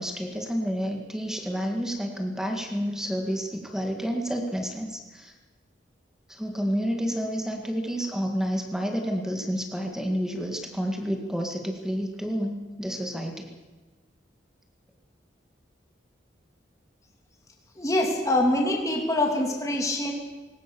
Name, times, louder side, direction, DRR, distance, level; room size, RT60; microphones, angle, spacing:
voice 1, 0.0-5.3 6.3-13.5, equal, 5° right, 3 dB, 2.1 m, -30 dB
voice 2, 17.7-20.1, left 1 dB, 15° left, 1 dB, 2.9 m, -24 dB
21.0 x 19.0 x 7.1 m, 1.2 s
head